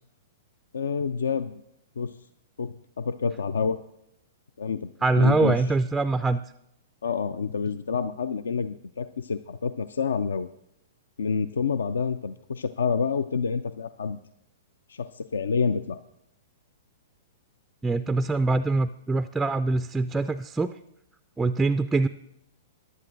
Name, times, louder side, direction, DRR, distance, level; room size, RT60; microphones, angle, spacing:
voice 1, 0.7-1.6 2.0-2.2 2.6-3.8 4.6-4.9 5.2-5.5 7.0-10.5 11.2-14.2 14.9-16.0, left 5 dB, 65° left, 14 dB, 0.4 m, -28 dB
voice 2, 5.0-6.4 17.8-20.8 21.4-22.1, right 3 dB, 10° right, 11 dB, 0.3 m, -24 dB
22.0 x 11.0 x 2.5 m, 0.79 s
figure-of-eight pair, 105°, 0 cm